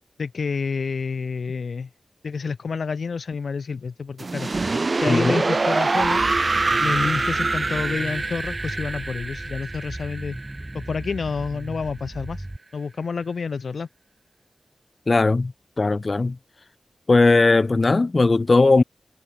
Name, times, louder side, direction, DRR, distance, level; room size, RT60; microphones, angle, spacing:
voice 1, 0.2-1.9 2.2-4.5 4.9-6.2 6.8-10.4 10.7-12.5 12.7-13.9, left 5 dB, 80° left, 0.4 m, -29 dB
sound 1, 4.2-11.1, right 3 dB, 55° right, 1.0 m, -24 dB
voice 2, 5.1-5.4 15.1-15.5 15.8-16.4 17.1-18.8, left 3 dB, 50° left, 0.8 m, -18 dB
sound 2, 6.0-12.6, right 1 dB, 20° right, 1.2 m, -36 dB
cardioid pair, 40°, 0 cm